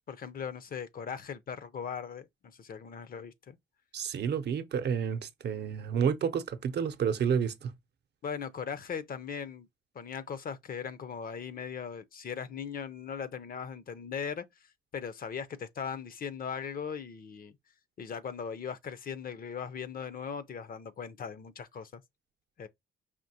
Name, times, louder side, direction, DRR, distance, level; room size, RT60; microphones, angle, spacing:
voice 1, 0.1-3.6 8.2-9.7 9.9-14.4 14.9-17.6 18.0-22.0 22.6-22.7, left 7 dB, 45° left, 0.6 m, -39 dB
voice 2, 3.9-7.7, right 7 dB, 60° right, 0.7 m, -30 dB
5.0 x 2.9 x 2.8 m
cardioid pair, 90°, 20 cm